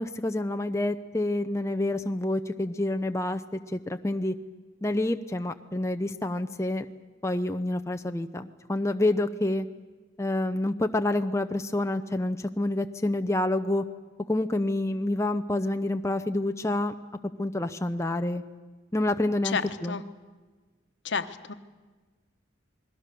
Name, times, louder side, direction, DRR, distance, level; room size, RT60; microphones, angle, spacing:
voice 1, 0.0-3.4 3.7-4.3 4.8-6.9 7.2-9.7 10.2-13.8 14.3-16.9 17.4-18.4 18.9-20.0, left 1 dB, 15° left, 7 dB, 0.6 m, -28 dB
voice 2, 21.0-21.5, left 5 dB, 65° left, 10 dB, 1.2 m, -30 dB
28.5 x 21.0 x 6.9 m, 1.3 s
head